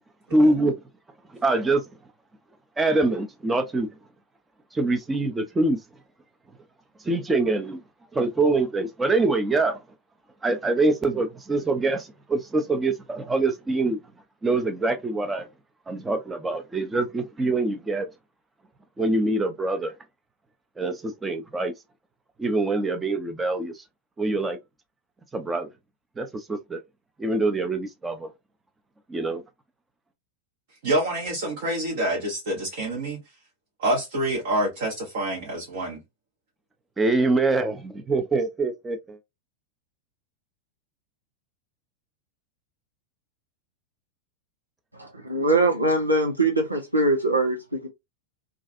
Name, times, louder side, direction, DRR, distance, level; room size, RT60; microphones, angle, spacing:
voice 1, 0.3-0.8 1.4-1.8 2.8-3.9 4.7-5.8 7.0-7.8 8.1-9.8 10.4-14.0 14.4-15.5 15.9-18.1 19.0-19.9 20.8-21.7 22.4-23.8 24.2-24.6 25.3-25.7 26.2-26.8 27.2-28.3 29.1-29.4 37.0-39.2, right 2 dB, 15° right, 0.6 m, -24 dB
voice 2, 30.8-33.2 33.8-36.0, right 1 dB, 55° right, 1.0 m, -27 dB
voice 3, 44.9-47.9, right 2 dB, 85° right, 0.8 m, -22 dB
2.5 x 2.4 x 2.4 m
figure-of-eight pair, 90°, 0 cm